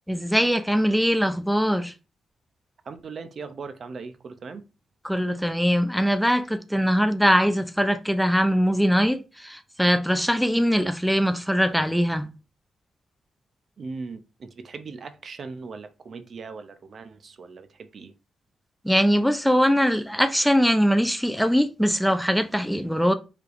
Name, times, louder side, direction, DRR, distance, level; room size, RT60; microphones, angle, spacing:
voice 1, 0.1-1.9 5.0-12.3 18.8-23.1, equal, ahead, 0.4 m, -22 dB
voice 2, 2.8-4.6 13.8-18.1 22.7-23.0, right 4 dB, 50° right, 0.5 m, -39 dB
4.7 x 3.2 x 2.5 m
cardioid pair, 105°, 0 cm